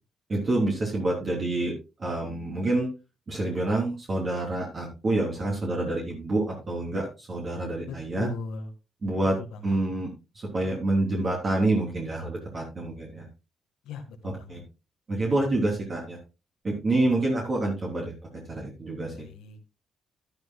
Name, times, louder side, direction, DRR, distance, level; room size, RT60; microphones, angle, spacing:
voice 1, 0.3-1.7 2.0-2.9 3.3-8.3 9.0-10.1 10.4-13.3 14.2-14.6 15.1-16.2 16.6-18.1 18.5-19.3, right 2 dB, 40° right, -2 dB, 3.4 m, -27 dB
voice 2, 7.8-8.7 9.4-9.8 13.9-14.6 19.1-19.6, left 5 dB, 85° left, 6 dB, 1.6 m, -39 dB
12.0 x 10.5 x 2.3 m, 0.28 s
cardioid pair, 90°, 0 cm